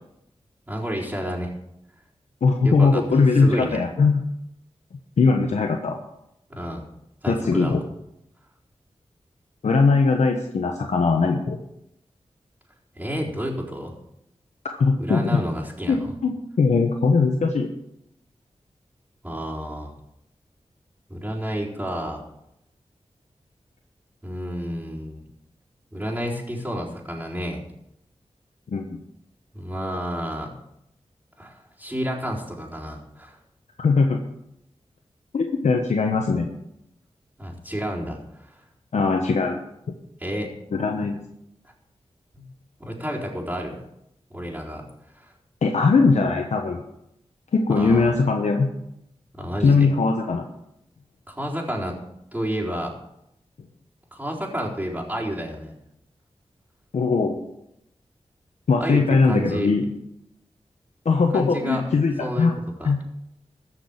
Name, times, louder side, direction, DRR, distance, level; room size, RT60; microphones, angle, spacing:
voice 1, 0.7-1.5 2.6-3.8 6.5-6.9 7.2-7.8 12.9-13.9 15.0-16.1 19.2-19.9 21.1-22.2 24.2-25.2 25.9-27.6 29.5-30.5 31.4-33.4 37.4-38.5 40.2-40.5 42.3-42.5 42.8-43.8 44.3-44.8 45.1-45.3 47.7-48.1 49.3-49.9 51.3-52.0 52.3-52.9 54.1-55.7 58.8-59.7 61.3-61.8 62.2-62.5 62.8-62.9, equal, 10° right, -5 dB, 4.2 m, -30 dB
voice 2, 2.4-4.2 5.2-6.0 7.3-7.8 9.6-11.6 14.6-15.4 15.9-17.7 28.7-29.0 33.8-34.2 35.3-36.5 38.9-39.6 40.7-41.2 45.6-46.8 47.5-48.7 49.6-50.4 56.9-57.4 58.7-59.8 61.0-62.5 62.8-63.0, left 4 dB, 85° left, 2 dB, 1.2 m, -20 dB
14.5 x 6.2 x 8.8 m, 0.81 s
wide cardioid pair, 75°, 11 cm